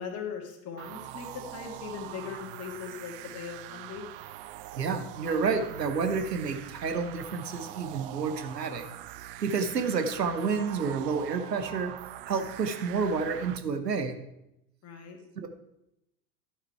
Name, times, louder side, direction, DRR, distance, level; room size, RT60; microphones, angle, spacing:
voice 1, 0.0-4.1 14.8-15.2, left 6 dB, 30° left, 3 dB, 1.8 m, -39 dB
sound 1, 0.8-13.6, right 14 dB, 40° right, 0.4 m, -43 dB
voice 2, 4.7-8.8 9.4-11.9 12.3-14.2 15.4-15.5, right 5 dB, 80° right, 7 dB, 1.0 m, -29 dB
11.0 x 5.9 x 4.6 m, 0.87 s
figure-of-eight pair, 85°, 48 cm